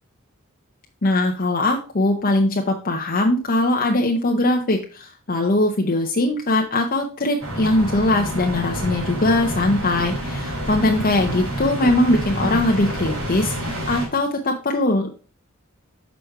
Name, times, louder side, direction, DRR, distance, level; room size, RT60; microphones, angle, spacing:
voice 1, 1.0-15.1, left 2 dB, 45° left, 2 dB, 0.8 m, -21 dB
sound 1, 7.4-14.1, equal, 75° right, 3.8 m, -28 dB
6.5 x 5.1 x 4.6 m, 0.37 s
head